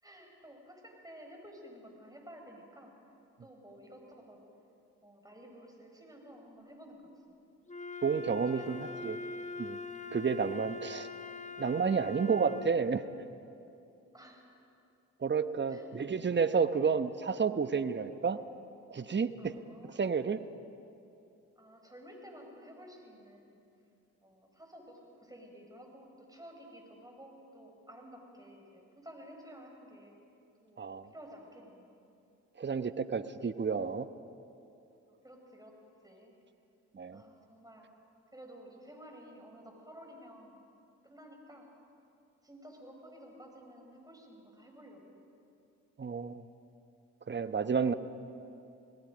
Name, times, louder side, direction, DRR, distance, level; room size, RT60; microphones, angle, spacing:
voice 1, 0.0-2.9 3.4-4.4 5.0-7.0 7.3-7.4 8.6-9.0 14.1-14.5 15.7-16.3 19.4-20.1 21.6-23.6 24.2-30.2 30.6-30.8 31.1-32.0 35.1-36.3 37.1-37.9 38.3-40.6 41.0-41.7 42.4-45.2, equal, 10° right, 2 dB, 5.6 m, -53 dB
Wind instrument woodwind instrument, 7.7-12.8, left 3 dB, 20° left, 1.2 m, -43 dB
voice 2, 8.0-9.2 9.6-9.8 10.1-11.1 11.6-13.0 15.2-18.4 18.9-19.5 19.9-20.4 30.8-31.1 32.6-34.1 36.9-37.2 46.0-46.4 47.3-47.9, right 5 dB, 30° right, 11 dB, 1.1 m, -31 dB
27.5 x 18.5 x 5.2 m, 2.7 s
hypercardioid pair, 50°, 36 cm